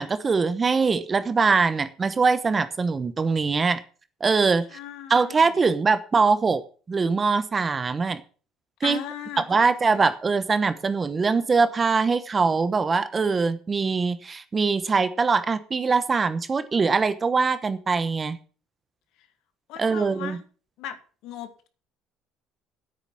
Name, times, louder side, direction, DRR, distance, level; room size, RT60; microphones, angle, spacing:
voice 1, 0.0-3.8 4.2-4.8 5.1-6.6 6.9-8.2 8.8-9.0 9.5-18.4 19.8-20.4, right 4 dB, 25° right, 13 dB, 1.0 m, -22 dB
voice 2, 4.7-5.5 8.8-10.1 19.2-19.3 19.7-20.4 20.8-21.0 21.2-21.7, left 10 dB, 70° left, 9 dB, 1.8 m, -38 dB
9.7 x 8.7 x 7.4 m, 0.39 s
cardioid pair, 135°, 0 cm